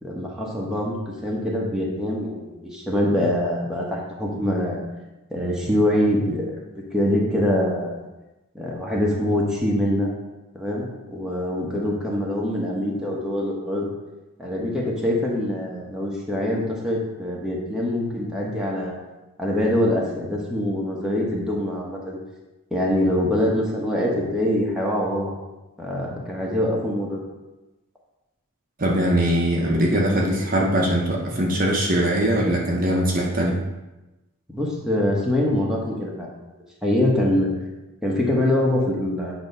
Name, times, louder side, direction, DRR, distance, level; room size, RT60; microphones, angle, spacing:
voice 1, 0.0-1.0 1.2-4.8 5.3-6.6 6.9-8.0 8.5-10.1 10.5-13.9 14.4-18.9 19.4-22.2 22.7-25.4 25.8-27.2 34.5-36.3 36.8-37.5 38.0-39.3, left 1 dB, 5° right, -4 dB, 1.1 m, -24 dB
voice 2, 28.8-33.6, right 1 dB, 40° right, -1 dB, 0.9 m, -21 dB
8.7 x 3.0 x 5.5 m, 1.0 s
head